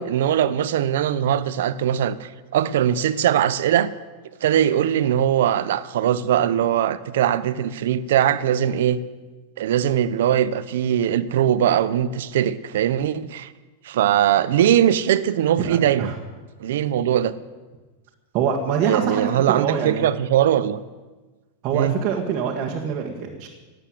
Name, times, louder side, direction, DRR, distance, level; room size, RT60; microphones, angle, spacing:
voice 1, 0.0-3.9 4.4-9.0 9.6-13.5 13.8-16.1 16.6-17.3 18.8-20.8 21.7-21.9, right 10 dB, 75° right, 14 dB, 0.8 m, -21 dB
voice 2, 15.6-16.2 18.3-20.1 21.6-23.5, right 7 dB, 40° right, -1 dB, 1.8 m, -25 dB
18.5 x 8.1 x 7.8 m, 1.3 s
supercardioid pair, 150°, 0 cm